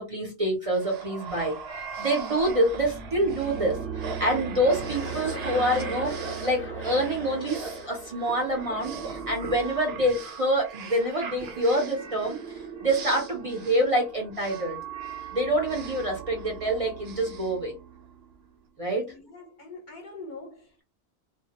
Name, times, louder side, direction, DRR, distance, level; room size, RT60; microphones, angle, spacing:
voice 1, 0.0-14.8 15.3-17.7 18.8-19.1, right 1 dB, 40° right, 0.5 m, -27 dB
sound 1, 0.7-18.3, right 6 dB, 65° right, 0.8 m, -38 dB
Chuckle chortle, 4.6-8.4, equal, 15° left, 0.5 m, -40 dB
voice 2, 19.1-20.8, left 3 dB, 50° left, 0.7 m, -43 dB
2.2 x 2.1 x 2.8 m
omnidirectional pair, 1.2 m